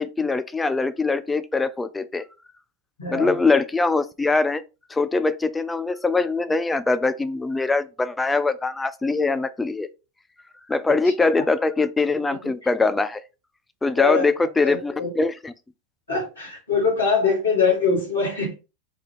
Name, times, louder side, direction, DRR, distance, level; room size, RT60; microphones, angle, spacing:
voice 1, 0.0-2.3 3.1-4.6 4.9-9.9 10.7-13.2 13.8-15.5, left 3 dB, 10° left, 0.3 m, -22 dB
voice 2, 3.0-3.3 11.4-11.5 12.6-12.7 14.0-14.3 14.6-15.1 16.1-18.5, left 5 dB, 75° left, 1.4 m, -23 dB
3.3 x 2.2 x 3.2 m
figure-of-eight pair, 85°, 0 cm